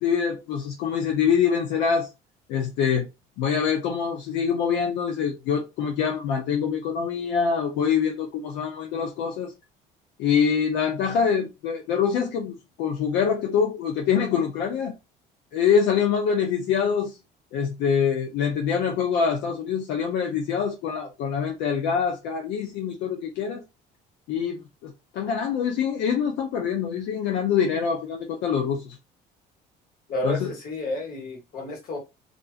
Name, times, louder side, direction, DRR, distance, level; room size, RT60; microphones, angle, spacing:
voice 1, 0.0-2.1 2.5-3.1 3.4-9.5 10.2-14.9 15.5-17.2 17.5-23.6 24.3-29.0 30.2-30.5, left 7 dB, 85° left, 0.6 m, -25 dB
voice 2, 30.1-32.0, left 1 dB, 55° left, 1.3 m, -31 dB
2.5 x 2.5 x 2.4 m
cardioid pair, 100°, 18 cm